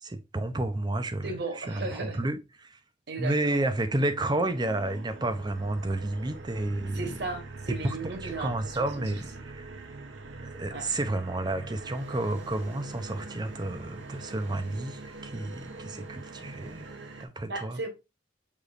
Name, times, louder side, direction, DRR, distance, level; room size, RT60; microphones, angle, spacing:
voice 1, 0.0-1.3 1.6-2.7 3.2-7.1 7.7-9.7 10.4-16.9 17.2-17.8, right 2 dB, 25° right, 0.5 m, -31 dB
voice 2, 1.2-2.2 3.1-3.6 6.8-9.1 10.7-10.8 12.7-12.8 17.5-17.9, right 3 dB, 65° right, 1.1 m, -36 dB
sound 1, 3.2-17.3, right 3 dB, 80° right, 0.7 m, -43 dB
6.5 x 3.0 x 2.4 m
head